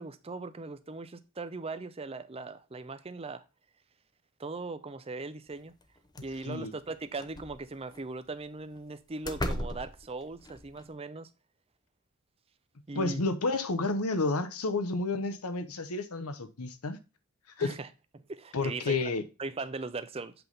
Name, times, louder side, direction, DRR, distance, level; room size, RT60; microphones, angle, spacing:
voice 1, 0.0-3.4 4.4-5.7 6.2-11.3 12.9-13.2 17.6-17.9 18.1-19.0 19.4-20.3, right 3 dB, 25° right, 0.5 m, -39 dB
sound 1, 5.8-5.9 6.1-6.6 7.2-8.0 8.8-8.9 9.2-10.8, left 1 dB, 20° left, 0.6 m, -37 dB
voice 2, 12.9-17.0 17.6-17.7 18.5-19.2, left 3 dB, 85° left, 1.0 m, -30 dB
8.0 x 3.6 x 3.9 m
head